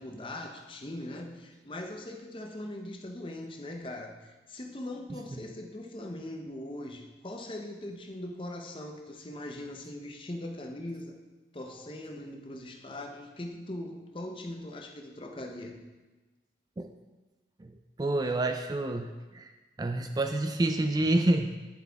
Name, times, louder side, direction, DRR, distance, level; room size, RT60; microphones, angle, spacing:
voice 1, 0.0-11.2 11.5-15.9, left 1 dB, 30° left, 3 dB, 0.7 m, -40 dB
voice 2, 18.0-19.5 19.8-21.5, right 2 dB, 20° right, 6 dB, 0.3 m, -28 dB
9.8 x 7.5 x 3.5 m, 1.2 s
head